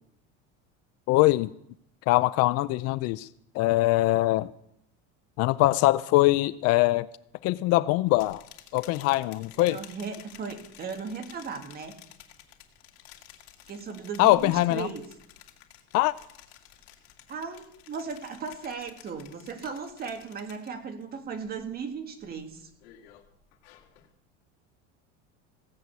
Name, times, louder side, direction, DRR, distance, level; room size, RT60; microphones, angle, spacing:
voice 1, 1.1-1.5 2.1-3.3 3.5-4.5 5.4-7.1 7.4-8.4 8.7-9.8 14.2-14.9 15.9-16.1, left 18 dB, 55° left, 17 dB, 0.5 m, -22 dB
sound 1, 8.1-21.0 21.4-21.8 22.2-24.1, left 12 dB, 85° left, 2.2 m, -52 dB
voice 2, 9.6-12.0 13.7-15.0 17.3-22.7, right 5 dB, 30° right, 6 dB, 2.0 m, -37 dB
16.0 x 7.8 x 8.3 m, 0.73 s
cardioid pair, 150°, 30 cm